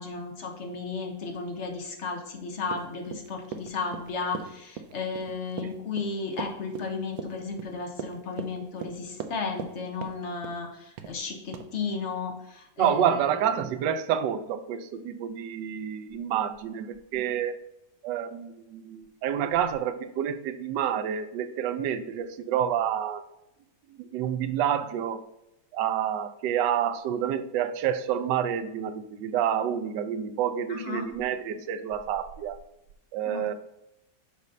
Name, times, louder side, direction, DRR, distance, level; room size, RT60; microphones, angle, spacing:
voice 1, 0.0-13.4 30.7-31.1 33.3-33.5, left 4 dB, 50° left, 3 dB, 1.1 m, -34 dB
Run, 2.6-9.7 10.0-10.6 11.0-11.2 11.5-11.7, right 7 dB, 70° right, 1.0 m, -39 dB
voice 2, 12.8-17.6 18.0-23.2 24.0-25.2 25.7-32.6 33.1-33.5, right 9 dB, 85° right, 10 dB, 1.2 m, -28 dB
6.6 x 3.1 x 5.3 m, 0.88 s
omnidirectional pair, 1.9 m